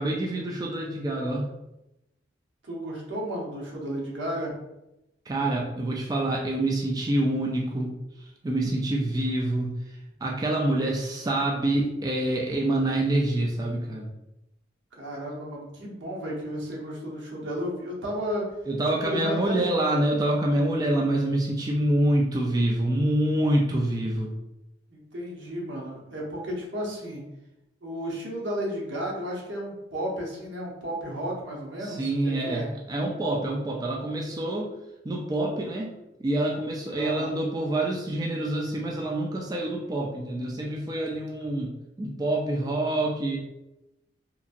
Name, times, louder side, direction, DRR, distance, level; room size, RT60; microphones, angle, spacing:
voice 1, 0.0-1.5 5.3-14.1 18.7-24.3 31.8-34.7 35.0-35.9 36.2-43.4, right 1 dB, 20° right, -2 dB, 0.3 m, -26 dB
voice 2, 2.6-4.5 15.0-18.6 19.0-19.6 24.9-27.2 27.8-32.7 37.0-37.4, equal, 75° right, -2 dB, 0.8 m, -33 dB
2.8 x 2.6 x 2.4 m, 0.91 s
head